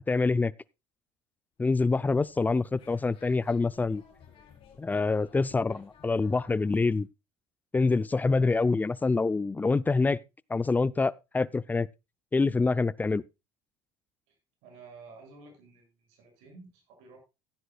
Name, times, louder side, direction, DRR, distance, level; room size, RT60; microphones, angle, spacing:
voice 1, 0.1-0.5 1.6-4.0 4.8-7.1 7.7-10.2 10.5-11.9 12.3-13.2, left 3 dB, 15° left, 0.5 m, -26 dB
sound 1, 1.6-7.0, left 7 dB, 50° left, 3.8 m, -57 dB
voice 2, 8.4-8.8 14.3-17.2, right 4 dB, 75° right, 6.7 m, -52 dB
15.5 x 10.0 x 2.3 m
supercardioid pair, 90°, 12 cm